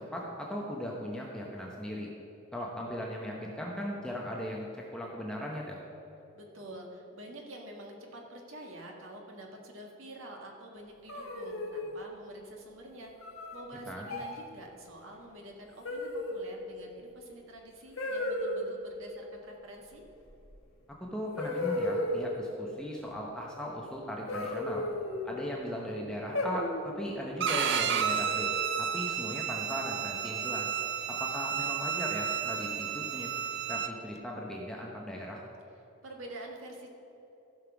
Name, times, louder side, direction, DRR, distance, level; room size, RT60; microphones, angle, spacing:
voice 1, 0.0-2.1 2.5-5.8 13.9-14.1 21.1-24.8 25.2-28.5 28.8-30.7 31.1-33.3 33.7-35.4, equal, 5° left, -2 dB, 0.9 m, -38 dB
voice 2, 6.4-13.1 13.5-20.0 36.0-36.9, right 1 dB, 70° right, 1 dB, 1.8 m, -47 dB
sound 1, 11.1-12.0 13.2-13.6 14.1-14.4 15.8-16.5 18.0-18.6 20.5-20.6 21.4-22.3 24.3-25.4 26.3-27.0 28.2-28.8, left 1 dB, 70° left, 1.6 m, -34 dB
Bowed string instrument, 27.4-33.9, right 8 dB, 55° right, 0.6 m, -32 dB
15.0 x 5.8 x 5.9 m, 3.0 s
head